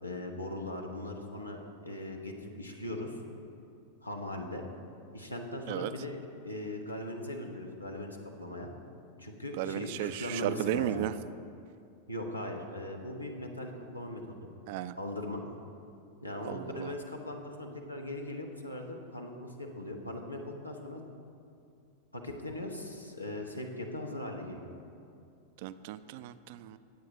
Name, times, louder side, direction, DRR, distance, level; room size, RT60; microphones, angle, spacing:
voice 1, 0.0-3.2 4.0-4.6 5.1-8.7 9.2-11.0 12.1-14.3 14.9-15.4 16.2-21.0 22.1-24.7, left 1 dB, 85° left, 2 dB, 1.1 m, -39 dB
voice 2, 9.6-11.1 14.7-14.9 16.4-16.9 25.6-26.8, right 12 dB, 50° right, 13 dB, 0.4 m, -34 dB
18.5 x 7.9 x 3.0 m, 2.5 s
figure-of-eight pair, 90°, 0 cm